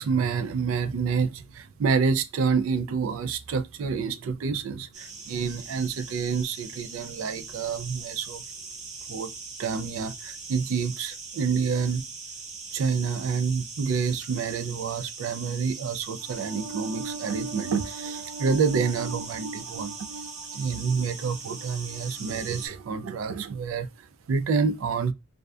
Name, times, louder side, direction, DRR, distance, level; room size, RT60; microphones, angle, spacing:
voice 1, 0.0-8.4 9.1-9.3 9.6-12.1 12.7-25.1, right 5 dB, 70° right, 0.3 m, -28 dB
sound 1, 4.9-22.7, right 4 dB, 35° right, 0.7 m, -41 dB
2.6 x 2.1 x 2.3 m
head